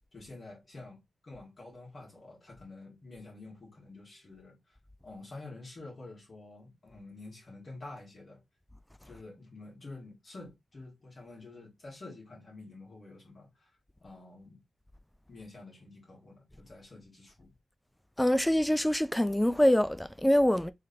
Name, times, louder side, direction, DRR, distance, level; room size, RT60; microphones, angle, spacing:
voice 1, 0.1-4.8 5.0-8.4 9.0-13.7 14.0-14.6 15.3-17.5, left 2 dB, 50° left, 1.8 m, -48 dB
voice 2, 18.2-20.7, left 1 dB, 5° left, 0.3 m, -25 dB
3.8 x 3.3 x 2.6 m
cardioid pair, 80°, 0 cm